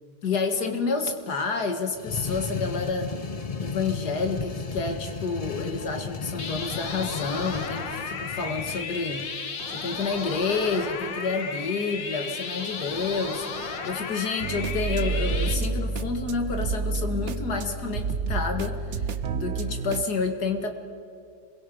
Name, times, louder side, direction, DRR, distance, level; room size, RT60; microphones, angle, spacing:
voice 1, 0.2-3.1 3.6-20.7, left 4 dB, 60° left, 5 dB, 2.3 m, -29 dB
sound 1, 1.9-9.3, left 4 dB, 35° left, 0.5 m, -35 dB
sound 2, 6.4-15.5, left 5 dB, 80° left, 2.3 m, -34 dB
sound 3, 14.4-20.0, right 4 dB, 50° right, 0.9 m, -29 dB
28.5 x 22.0 x 5.3 m, 2.5 s
omnidirectional pair, 2.0 m